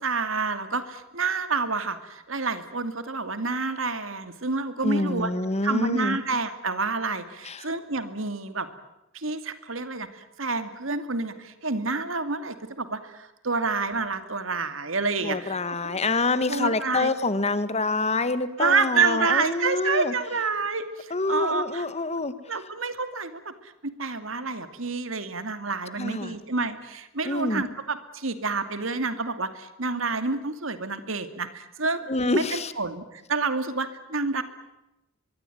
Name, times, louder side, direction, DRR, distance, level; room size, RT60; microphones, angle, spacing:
voice 1, 0.0-5.3 5.6-8.7 9.1-15.6 15.8-16.0 16.5-17.1 18.6-21.8 22.5-32.1 32.3-34.4, right 4 dB, 75° right, 10 dB, 2.5 m, -28 dB
voice 2, 4.8-6.2 7.4-7.7 15.2-20.1 21.1-22.5 26.0-26.4 27.2-27.6 32.1-32.7, left 2 dB, 35° left, 13 dB, 1.6 m, -26 dB
24.0 x 23.5 x 9.3 m, 0.93 s
head